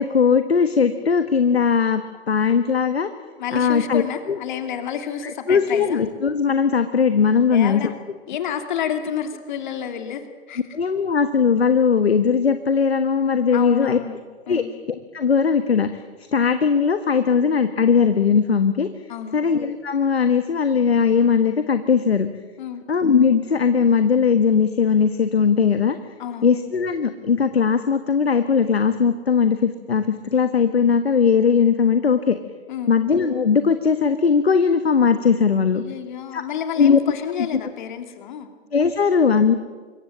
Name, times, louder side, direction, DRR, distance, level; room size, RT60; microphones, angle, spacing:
voice 1, 0.0-2.0 2.3-3.1 3.5-4.0 4.3-4.4 5.5-7.8 10.7-14.0 14.5-14.6 15.1-15.9 16.3-18.9 19.3-22.3 22.9-26.0 26.4-32.4 32.9-35.8 36.3-36.4 36.8-37.0 37.5-37.6 38.7-39.5, left 6 dB, 70° left, 10 dB, 1.4 m, -19 dB
voice 2, 3.4-5.8 7.5-7.9 8.3-10.6 13.5-14.2 14.5-14.7 19.1-19.4 22.6-22.8 26.2-26.5 32.7-33.0 35.7-38.5, left 8 dB, 45° left, 7 dB, 2.7 m, -30 dB
26.0 x 22.5 x 7.7 m, 1.4 s
figure-of-eight pair, 115°, 32 cm